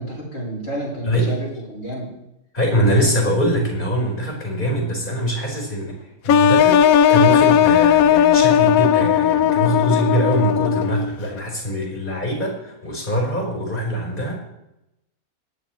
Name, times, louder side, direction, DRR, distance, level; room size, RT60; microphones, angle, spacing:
voice 1, 0.0-2.1, right 1 dB, 60° left, -4 dB, 5.1 m, -30 dB
voice 2, 1.0-1.4 2.5-14.4, equal, 35° left, 0 dB, 4.6 m, -23 dB
sound 1, 6.3-11.1, left 9 dB, 75° left, 1.0 m, -16 dB
19.0 x 11.0 x 3.1 m, 0.87 s
omnidirectional pair, 1.5 m